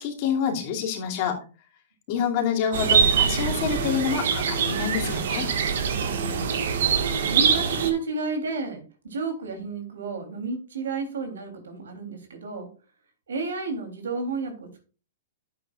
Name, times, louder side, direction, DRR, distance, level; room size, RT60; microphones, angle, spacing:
voice 1, 0.0-1.4 2.1-5.5, left 7 dB, 45° left, 0 dB, 2.7 m, -27 dB
sound 1, 2.7-7.9, right 6 dB, 70° right, 1.7 m, -24 dB
voice 2, 5.9-6.5 7.0-12.7 13.3-14.8, right 4 dB, 90° right, 5 dB, 3.3 m, -32 dB
11.5 x 8.3 x 2.5 m, 0.36 s
hypercardioid pair, 140°, 0 cm